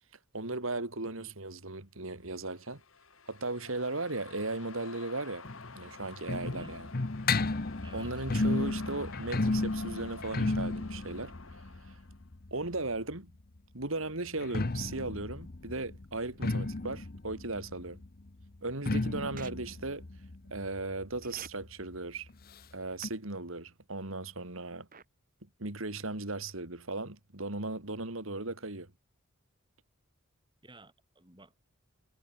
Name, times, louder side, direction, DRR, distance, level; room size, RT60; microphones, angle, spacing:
voice 1, 0.3-2.8 3.3-5.5 5.7-6.9 7.9-11.6 11.9-12.0 12.5-13.3 13.7-18.0 18.6-20.1 20.5-22.3 22.7-24.9 25.6-28.9, right 2 dB, 65° right, 2.9 m, -37 dB
sound 1, 2.4-12.2, left 4 dB, 65° left, 2.7 m, -50 dB
sound 2, 5.4-13.1 14.3-21.7 21.9-22.0 22.3-22.4 23.0-23.1, left 2 dB, 45° left, 0.9 m, -34 dB
voice 2, 7.8-8.2 30.6-31.7, right 1 dB, 20° right, 6.0 m, -53 dB
sound 3, 19.4-19.5 21.2-21.5 23.0-23.1 24.9-25.0, right 7 dB, 40° right, 6.9 m, -45 dB
head